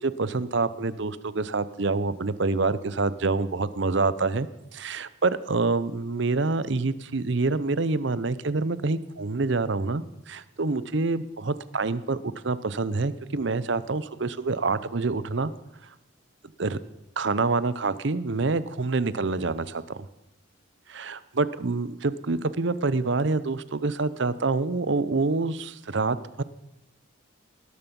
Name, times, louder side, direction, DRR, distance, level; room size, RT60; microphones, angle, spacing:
voice 1, 0.0-4.5 4.7-15.5 15.8-15.9 16.6-16.8 17.2-20.1 20.9-26.4, right 3 dB, 55° right, 16 dB, 0.7 m, -27 dB
19.5 x 13.0 x 5.4 m, 0.88 s
head